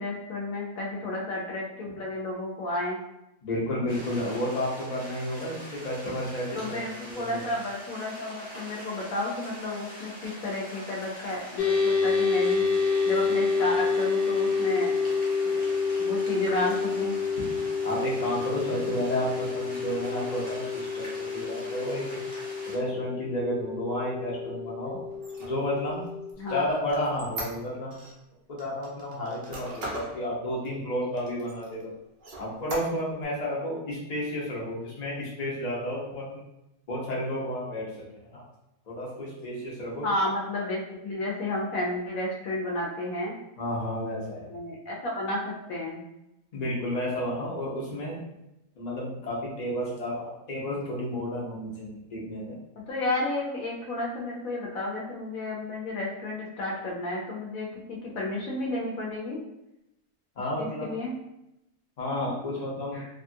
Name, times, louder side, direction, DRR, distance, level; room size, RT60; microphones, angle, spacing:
voice 1, 0.0-3.0 6.5-12.6 13.1-14.9 15.5-15.7 16.0-17.2 26.4-26.7 40.0-43.3 44.5-46.0 52.9-59.4 60.6-61.1 62.9-63.1, left 2 dB, 70° left, -2 dB, 0.9 m, -32 dB
voice 2, 3.4-7.4 17.8-21.0 21.3-22.2 22.6-25.0 25.5-26.0 26.5-28.0 28.5-31.9 32.4-36.4 36.9-37.9 38.1-38.4 38.9-40.0 43.6-44.5 46.5-48.2 48.8-52.5 60.4-60.9 62.0-63.0, left 1 dB, 45° left, -4 dB, 0.5 m, -31 dB
sound 1, 3.9-22.8, equal, 10° right, 0.5 m, -44 dB
sound 2, 11.6-26.3, left 5 dB, 90° left, 1.2 m, -28 dB
Squeak, 25.1-28.1 28.6-30.2 30.6-30.7 31.2-31.8 32.2-33.3, right 2 dB, 65° right, 0.5 m, -39 dB
2.7 x 2.4 x 2.6 m, 0.88 s
omnidirectional pair, 1.7 m